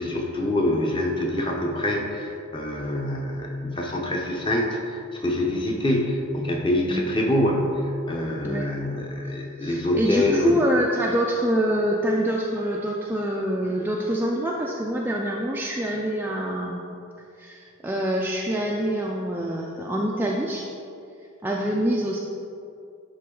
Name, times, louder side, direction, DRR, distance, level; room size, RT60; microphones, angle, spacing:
voice 1, 0.0-10.6, left 1 dB, 20° left, 0 dB, 0.7 m, -25 dB
voice 2, 9.6-16.8 17.4-20.7 21.4-22.2, right 1 dB, 10° right, -2 dB, 0.3 m, -25 dB
11.0 x 3.7 x 3.8 m, 2.5 s
head